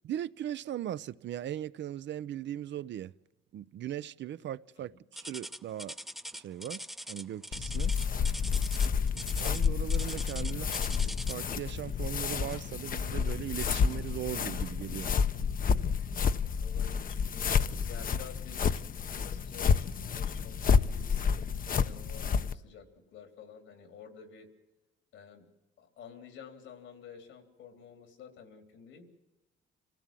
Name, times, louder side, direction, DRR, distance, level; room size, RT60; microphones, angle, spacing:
voice 1, 0.0-3.1 3.5-6.0 6.3-8.0 9.4-10.7 11.3-15.1, right 11 dB, 65° right, 0.7 m, -38 dB
sound 1, 5.2-11.5 12.5-12.8 13.3-13.4 14.1-14.2, equal, ahead, 0.8 m, -42 dB
sound 2, 7.5-22.5, left 6 dB, 45° left, 0.8 m, -30 dB
voice 2, 10.4-10.8 16.6-21.3 21.7-24.5 25.1-25.5 25.8-29.1, left 6 dB, 80° left, 3.6 m, -51 dB
26.0 x 16.5 x 7.5 m
cardioid pair, 90°, 20 cm